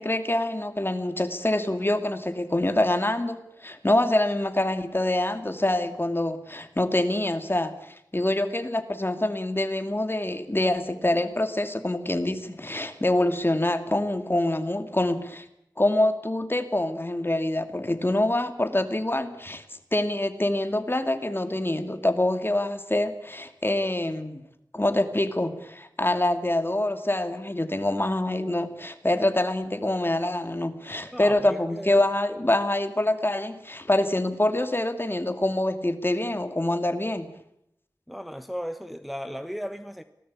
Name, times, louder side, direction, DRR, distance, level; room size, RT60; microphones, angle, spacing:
voice 1, 0.0-15.4 15.8-19.6 19.9-24.5 24.7-37.3, left 1 dB, 30° left, 2.4 m, -25 dB
voice 2, 31.1-32.4 38.1-40.0, equal, ahead, 1.2 m, -36 dB
25.5 x 18.5 x 8.6 m
wide cardioid pair, 60°, 7 cm